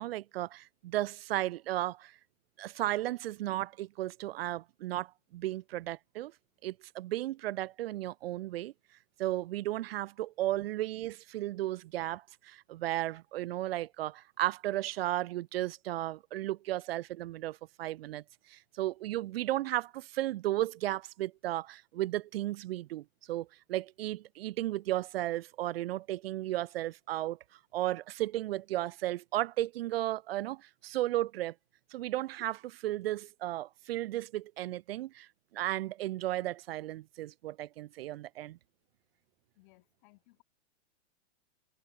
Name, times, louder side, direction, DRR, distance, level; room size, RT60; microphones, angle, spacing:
voice 1, 0.0-2.2 2.6-6.3 6.6-8.7 9.2-27.4 27.7-31.5 31.9-35.3 35.5-38.6, right 15 dB, 55° right, 0.7 m, -34 dB
voice 2, 39.6-40.4, left 23 dB, 40° left, 3.5 m, -63 dB
supercardioid pair, 160°, 36 cm